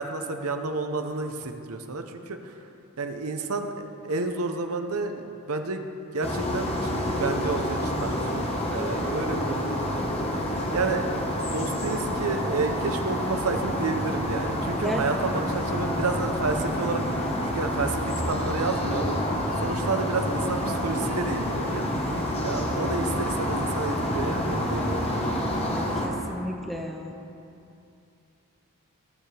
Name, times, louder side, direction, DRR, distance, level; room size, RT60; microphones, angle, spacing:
voice 1, 0.0-2.7 3.0-5.9 6.1-10.2 10.7-21.9 22.4-25.0, right 3 dB, 80° right, 6 dB, 0.8 m, -31 dB
sound 1, 6.2-26.1, equal, 25° left, 1.3 m, -28 dB
voice 2, 25.7-27.1, equal, ahead, 2 dB, 0.6 m, -33 dB
20.0 x 6.9 x 3.4 m, 2.7 s
head